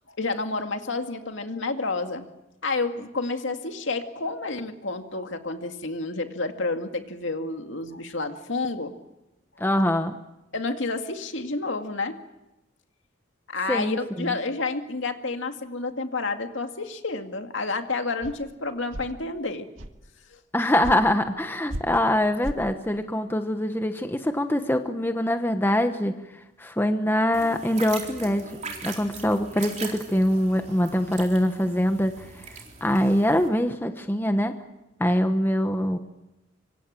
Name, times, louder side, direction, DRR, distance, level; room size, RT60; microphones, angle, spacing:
voice 1, 0.1-2.3 2.6-8.9 10.5-12.2 13.5-19.7 20.3-20.4, left 3 dB, 70° left, 6 dB, 2.2 m, -30 dB
voice 2, 9.6-10.2 13.7-14.3 20.5-26.1 26.6-28.5 28.8-32.4 32.8-34.5 35.0-36.0, left 1 dB, 10° left, 7 dB, 1.1 m, -24 dB
sound 1, 18.2-18.3 18.9-19.1 19.8-20.0 20.8-21.0 21.7-21.8 22.4-22.6, right 1 dB, 75° right, 1.8 m, -33 dB
sound 2, 27.3-33.5, right 4 dB, 35° right, 4.0 m, -41 dB
25.0 x 25.0 x 7.6 m, 0.94 s
head